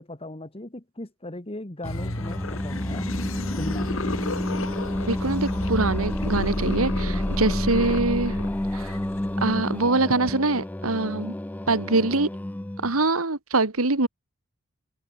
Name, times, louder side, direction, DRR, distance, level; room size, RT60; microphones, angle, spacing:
voice 1, 0.0-3.1 3.6-4.0, left 1 dB, 25° left, 1.8 m, -37 dB
sound 1, 1.8-9.8, left 1 dB, 70° left, 2.8 m, -31 dB
Singing, 1.8-13.0, left 1 dB, 10° left, 0.4 m, -30 dB
voice 2, 5.1-8.4 8.7-9.0 9.4-11.3 11.7-12.3 12.8-14.1, right 3 dB, 85° right, 2.1 m, -24 dB
open air
head